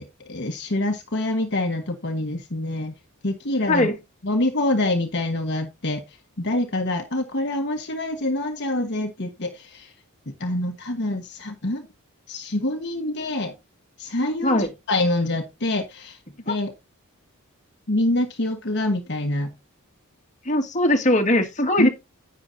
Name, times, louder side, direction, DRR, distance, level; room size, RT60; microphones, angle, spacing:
voice 1, 0.0-2.9 3.2-3.9 4.2-6.0 6.4-9.9 10.3-11.9 12.3-13.5 14.0-16.2 16.5-16.7 17.9-19.5 21.8-21.9, left 1 dB, 55° left, 1.5 m, -26 dB
voice 2, 20.5-21.9, left 1 dB, 35° left, 2.0 m, -20 dB
11.0 x 9.0 x 2.7 m
head